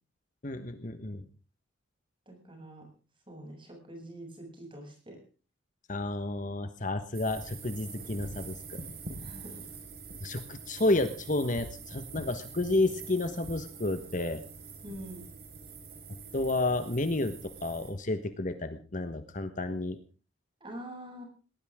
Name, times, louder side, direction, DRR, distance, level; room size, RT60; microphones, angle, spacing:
voice 1, 0.4-1.2 5.9-8.8 10.2-14.4 16.3-17.3 17.6-20.0, left 2 dB, 40° left, 9 dB, 1.3 m, -31 dB
voice 2, 2.3-2.9 3.3-5.2 9.2-9.8 14.8-15.2 20.6-21.2, right 1 dB, 25° right, 2 dB, 7.7 m, -45 dB
sound 1, 7.1-17.9, right 4 dB, 50° right, 5.2 m, -45 dB
19.0 x 19.0 x 3.7 m, 0.36 s
head